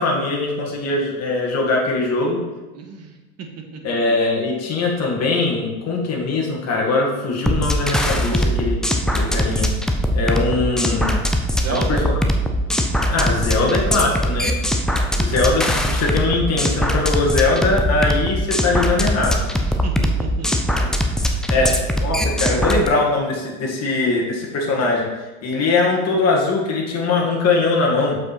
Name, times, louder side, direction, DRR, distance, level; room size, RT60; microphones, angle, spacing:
voice 1, 0.0-2.4 3.8-8.8 9.2-9.7 10.1-11.2 11.7-12.1 13.1-14.6 15.2-19.4 20.8-20.9 21.5-25.1 25.4-28.2, left 3 dB, 35° left, -2 dB, 2.1 m, -21 dB
voice 2, 2.7-3.5 3.7-3.8 11.5-12.1 19.6-20.5, right 5 dB, 35° right, 4 dB, 1.4 m, -31 dB
sound 1, 7.5-22.9, equal, ahead, 0.3 m, -21 dB
7.1 x 5.5 x 4.2 m, 1.2 s
hypercardioid pair, 90°, 45 cm